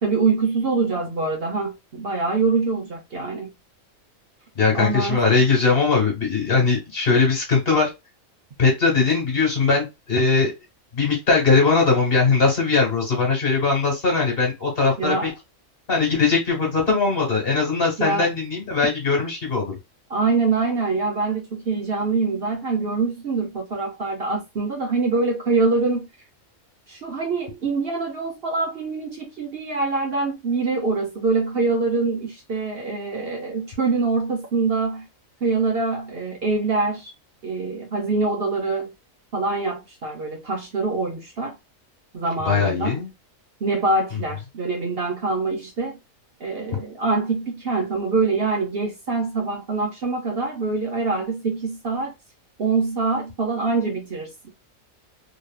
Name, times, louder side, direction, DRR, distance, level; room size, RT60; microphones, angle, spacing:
voice 1, 0.0-3.5 4.7-5.2 15.0-15.3 18.0-18.3 20.1-26.1 26.9-35.1 35.4-37.1 37.4-38.9 39.3-41.6 42.1-43.0 43.6-46.0 46.4-52.1 52.6-54.3, right 3 dB, 55° right, 0.8 m, -24 dB
voice 2, 4.6-7.9 8.6-10.5 10.9-15.3 15.9-19.8 42.4-43.1, left 4 dB, 45° left, 1.4 m, -20 dB
2.9 x 2.8 x 2.3 m
omnidirectional pair, 1.4 m